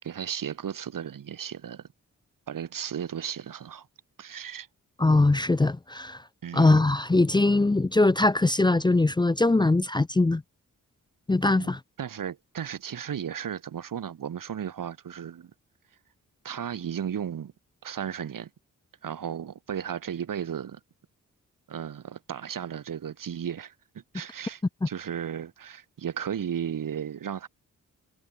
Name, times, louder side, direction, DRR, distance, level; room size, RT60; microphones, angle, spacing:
voice 1, 0.0-1.8 2.5-3.9 4.2-4.7 6.4-6.8 11.6-15.5 16.4-17.5 17.8-18.5 19.0-20.8 21.7-27.5, right 8 dB, 85° right, 5.1 m, -35 dB
voice 2, 5.0-6.2 6.5-10.4 11.3-11.8, left 2 dB, 15° left, 0.6 m, -21 dB
wide cardioid pair, 110°, 32 cm